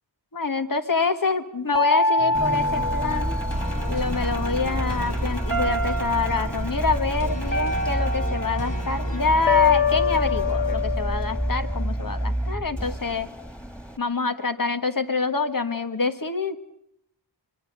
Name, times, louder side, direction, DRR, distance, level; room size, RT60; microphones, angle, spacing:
voice 1, 0.3-3.4 3.9-13.3 14.0-16.6, left 4 dB, 50° left, 8 dB, 1.6 m, -26 dB
sound 1, 1.7-4.1 5.5-6.5 7.5-8.8 9.5-11.8, left 4 dB, 25° left, 2.5 m, -25 dB
sound 2, 2.2-10.8, left 2 dB, 80° left, 3.6 m, -37 dB
Engine, 2.3-14.0, right 1 dB, 5° left, 2.2 m, -29 dB
25.0 x 22.5 x 6.8 m, 0.76 s
wide cardioid pair, 80°, 43 cm